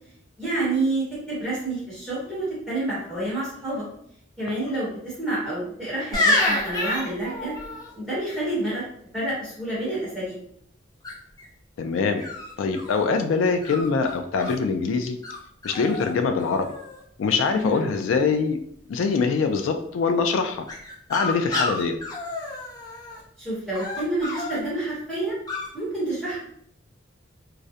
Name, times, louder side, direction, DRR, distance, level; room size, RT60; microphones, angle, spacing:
voice 1, 0.4-3.8 4.4-7.5 7.9-8.8 9.1-10.4 17.5-17.8 23.4-25.3 25.7-26.4, right 2 dB, ahead, -10 dB, 0.9 m, -28 dB
sound 1, 6.1-7.9 11.0-11.5 12.2-13.0 13.6-14.6 15.2-15.4 15.6-16.1 16.4-17.0 20.7-23.2 23.7-24.6 25.5-25.7, left 2 dB, 20° left, 0.5 m, -28 dB
voice 2, 11.8-12.2 12.6-15.2 15.6-16.7 17.2-18.6 18.9-20.6 21.1-22.0, left 5 dB, 85° left, 6 dB, 0.3 m, -23 dB
2.3 x 2.0 x 2.6 m, 0.68 s
head